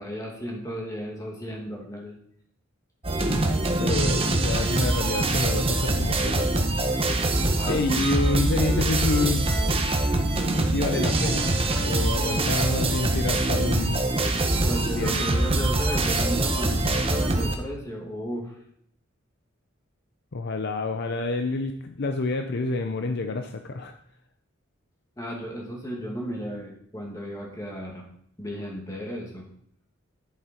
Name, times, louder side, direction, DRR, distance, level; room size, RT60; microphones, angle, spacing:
voice 1, 0.0-2.2 7.6-8.1 12.1-12.5 14.7-18.5 25.2-28.0 28.4-29.4, equal, 15° left, -1 dB, 2.3 m, -34 dB
sound 1, 3.0-17.6, right 2 dB, 25° right, 1.0 m, -24 dB
voice 2, 3.8-6.7 7.7-9.5 10.6-14.1 15.0-15.2 20.3-23.9, left 3 dB, 50° left, 6 dB, 0.6 m, -28 dB
11.0 x 7.3 x 4.4 m, 0.68 s
head